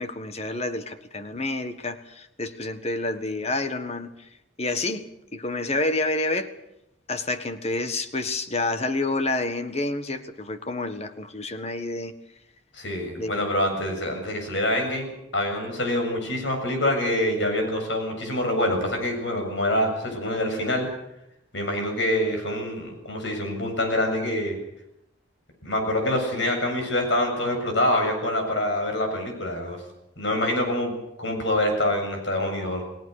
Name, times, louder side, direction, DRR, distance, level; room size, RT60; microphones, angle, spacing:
voice 1, 0.0-4.3 4.6-5.1 5.3-6.5 7.1-12.1 13.2-13.4, left 2 dB, 35° left, 10 dB, 1.7 m, -29 dB
voice 2, 12.7-20.9 21.5-24.6 25.6-29.8 30.2-30.9 31.2-32.8, left 1 dB, 70° left, 4 dB, 7.4 m, -25 dB
30.0 x 18.5 x 6.7 m, 0.81 s
head